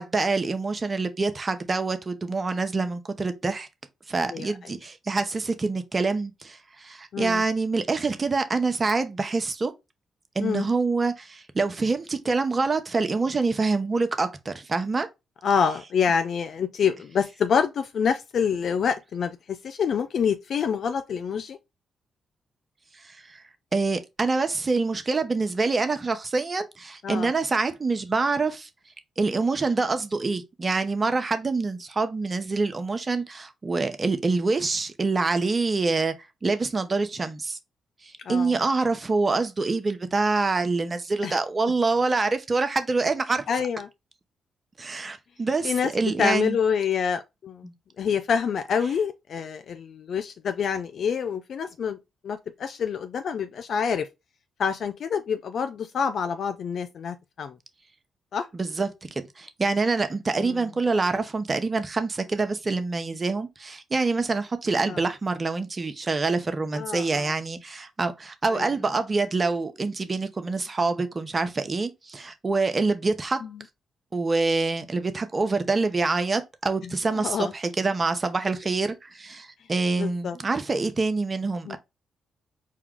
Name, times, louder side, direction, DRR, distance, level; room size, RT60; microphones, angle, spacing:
voice 1, 0.0-3.7 4.1-9.7 10.3-15.1 23.0-23.4 23.7-28.7 29.2-36.1 36.4-37.6 38.0-43.4 44.8-46.6 47.6-47.7 58.5-59.1 59.4-73.4 74.1-81.8, right 3 dB, 35° right, 0.8 m, -26 dB
voice 2, 7.1-7.4 10.4-10.7 15.4-21.6 27.0-27.3 38.3-38.5 41.2-41.4 43.5-43.9 45.6-45.9 46.2-47.7 48.0-52.0 52.2-54.1 54.6-57.5 58.3-58.5 60.4-60.6 64.9-65.0 66.7-67.3 68.5-68.7 73.4-73.5 77.2-77.5 80.0-80.4 81.7-81.8, left 7 dB, 60° left, 0.4 m, -27 dB
4.6 x 2.3 x 3.6 m
hypercardioid pair, 45°, 0 cm